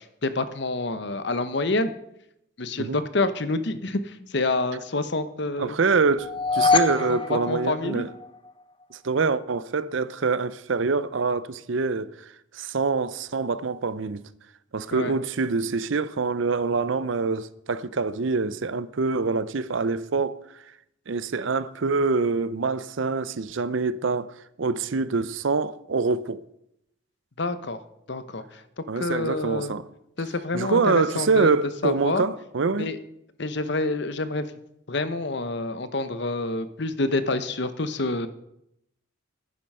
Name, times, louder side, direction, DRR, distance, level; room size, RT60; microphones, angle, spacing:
voice 1, 0.0-1.9 2.6-5.7 7.1-8.1 14.9-15.2 27.4-27.8 28.1-28.4 29.0-29.7 30.2-31.5 31.8-32.2 32.8-33.0 33.4-34.5 34.9-38.3, left 2 dB, 55° left, 0.9 m, -27 dB
voice 2, 5.6-8.1 9.0-12.1 12.5-14.2 14.7-20.4 21.1-26.4 28.9-29.9 30.5-32.9, right 4 dB, 65° right, 0.6 m, -25 dB
sound 1, 6.2-8.5, left 4 dB, 25° left, 0.7 m, -24 dB
10.5 x 9.8 x 5.5 m
head